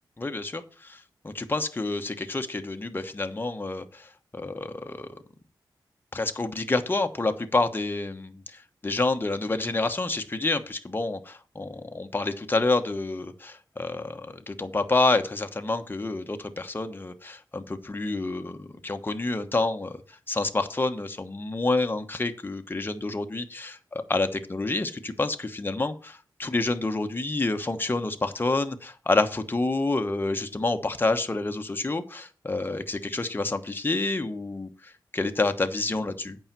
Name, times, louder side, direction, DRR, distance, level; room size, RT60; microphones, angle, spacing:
voice 1, 0.2-5.2 6.1-23.8 24.1-36.4, left 2 dB, 25° left, 1.1 m, -28 dB
8.7 x 5.7 x 7.4 m
wide cardioid pair, 95°, 8 cm